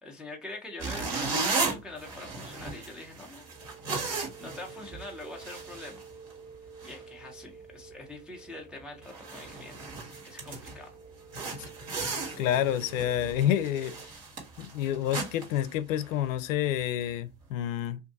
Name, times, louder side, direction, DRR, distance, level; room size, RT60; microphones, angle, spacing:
voice 1, 0.0-3.5 4.0-6.1 6.8-11.0 12.2-12.4, left 2 dB, ahead, 0.4 m, -44 dB
sound 1, 0.8-6.5 6.8-7.0 7.5-7.7 8.1-8.2 8.7-8.8 9.0-10.8 11.3-16.3, right 4 dB, 40° right, 1.4 m, -36 dB
sound 2, 3.3-14.1, right 5 dB, 85° right, 1.3 m, -50 dB
voice 2, 12.4-13.9 14.6-18.0, left 11 dB, 70° left, 0.5 m, -28 dB
2.6 x 2.5 x 3.4 m
supercardioid pair, 120°, 40 cm